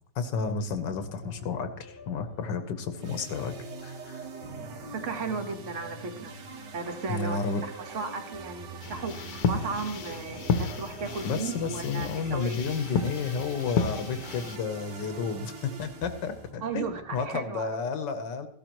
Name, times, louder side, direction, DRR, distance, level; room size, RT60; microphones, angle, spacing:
voice 1, 0.1-3.5 3.8-4.2 7.1-7.6 11.2-16.9 17.1-18.5, left 5 dB, 80° left, 9 dB, 1.5 m, -31 dB
sound 1, 0.7-17.3, right 1 dB, 15° right, 1.6 m, -49 dB
sound 2, 3.0-16.5, right 5 dB, 75° right, 1.8 m, -44 dB
voice 2, 4.9-6.3 6.7-12.6 16.6-17.7, right 4 dB, 45° right, 6 dB, 1.4 m, -35 dB
sound 3, 8.8-14.6, left 5 dB, 65° left, 1.3 m, -32 dB
15.5 x 12.5 x 3.0 m, 0.68 s
omnidirectional pair, 1.9 m